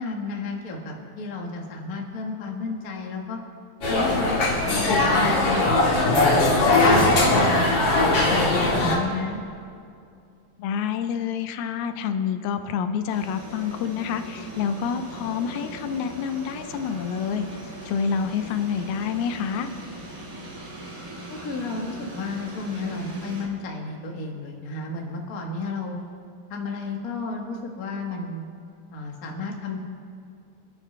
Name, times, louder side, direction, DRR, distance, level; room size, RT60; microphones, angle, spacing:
voice 1, 0.0-3.4 3.9-7.8 8.3-9.4 21.3-26.0 26.5-28.4 28.9-29.8, left 2 dB, 60° left, 0 dB, 0.9 m, -32 dB
sound 1, 3.8-9.0, left 2 dB, 45° left, 2.6 m, -20 dB
voice 2, 10.6-17.5 17.9-19.7, left 7 dB, 85° left, 8 dB, 2.7 m, -28 dB
sound 2, 13.1-23.5, right 1 dB, 75° right, 4.7 m, -40 dB
27.0 x 10.5 x 3.3 m, 2.3 s
omnidirectional pair, 4.3 m